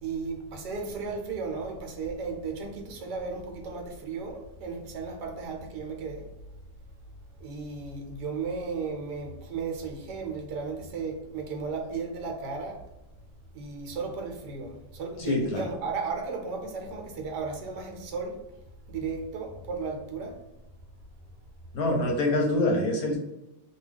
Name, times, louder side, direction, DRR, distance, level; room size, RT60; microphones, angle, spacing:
voice 1, 0.0-6.2 7.4-12.9 13.5-18.4 18.9-20.4, right 4 dB, 75° right, 2 dB, 1.2 m, -35 dB
voice 2, 15.2-15.6 21.7-23.2, left 1 dB, 70° left, 0 dB, 0.9 m, -25 dB
2.9 x 2.3 x 3.3 m, 0.93 s
omnidirectional pair, 1.9 m